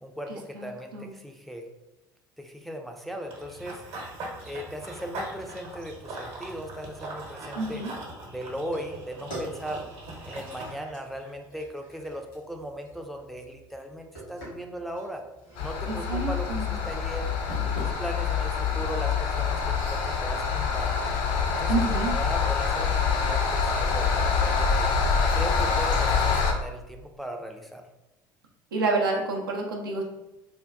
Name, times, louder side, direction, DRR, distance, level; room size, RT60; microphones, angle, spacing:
voice 1, 0.0-1.7 2.4-3.8 4.5-7.8 8.3-9.9 10.3-15.3 15.6-17.3 17.8-21.0 21.5-24.9 25.3-27.8, equal, ahead, 3 dB, 0.4 m, -38 dB
Run / Bird vocalization bird call bird song, 3.3-10.7, right 2 dB, 55° right, 0.9 m, -40 dB
voice 2, 7.6-7.9 15.9-16.8 21.7-22.1 28.7-30.0, right 3 dB, 80° right, 0 dB, 0.5 m, -28 dB
sound 1, 8.6-26.4, equal, 85° left, 1.5 m, -47 dB
sound 2, 15.6-26.5, left 5 dB, 55° left, 0.5 m, -25 dB
3.4 x 2.2 x 2.4 m, 0.95 s
figure-of-eight pair, 65°, 11 cm